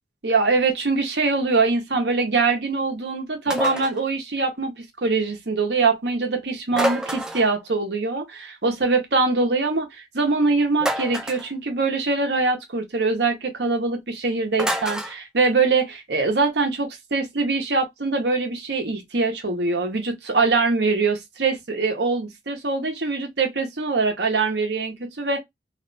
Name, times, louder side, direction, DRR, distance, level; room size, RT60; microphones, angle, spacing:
voice 1, 0.2-25.4, right 3 dB, 75° right, 0.9 m, -23 dB
sound 1, 3.5-4.0 6.7-7.6 10.8-11.5 14.6-15.2, equal, 5° right, 0.3 m, -27 dB
2.6 x 2.2 x 3.9 m
head